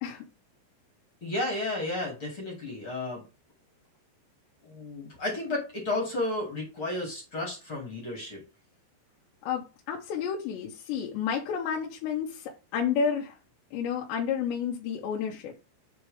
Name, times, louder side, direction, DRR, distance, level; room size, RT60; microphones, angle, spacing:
voice 1, 1.2-3.2 4.6-8.4, left 2 dB, 40° left, 2.2 m, -32 dB
voice 2, 9.4-13.4 13.7-15.6, left 7 dB, 75° left, 2.9 m, -31 dB
8.0 x 4.3 x 3.4 m
omnidirectional pair, 5.7 m